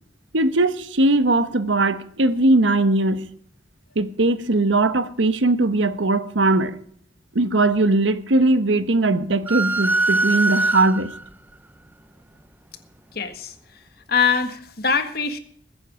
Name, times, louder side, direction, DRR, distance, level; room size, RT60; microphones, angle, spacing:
voice 1, 0.3-3.3 3.9-6.8 7.3-11.1, right 2 dB, 90° right, 1.1 m, -19 dB
sound 1, 9.5-11.3, right 2 dB, 10° right, 0.6 m, -22 dB
voice 2, 13.1-13.8 14.1-15.4, left 5 dB, 55° left, 1.7 m, -23 dB
21.5 x 9.5 x 5.0 m
head